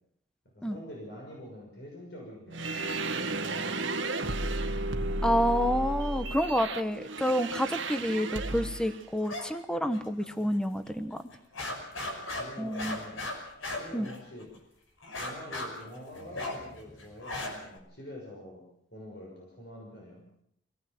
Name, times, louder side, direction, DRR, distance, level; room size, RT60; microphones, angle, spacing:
voice 1, 0.4-4.3 8.0-8.3 11.9-13.3 13.8-14.6 15.1-20.3, equal, 55° left, -1 dB, 6.4 m, -46 dB
sound 1, 2.5-9.0, right 2 dB, 80° right, 1.6 m, -33 dB
voice 2, 5.2-11.2 12.6-13.0 13.9-14.1, equal, 5° left, 9 dB, 1.1 m, -29 dB
sound 2, 9.2-9.4 9.7-10.5 10.9-11.0 11.3-14.6 15.0-17.8, left 2 dB, 85° left, 5.8 m, -37 dB
24.5 x 18.5 x 7.7 m, 0.75 s
head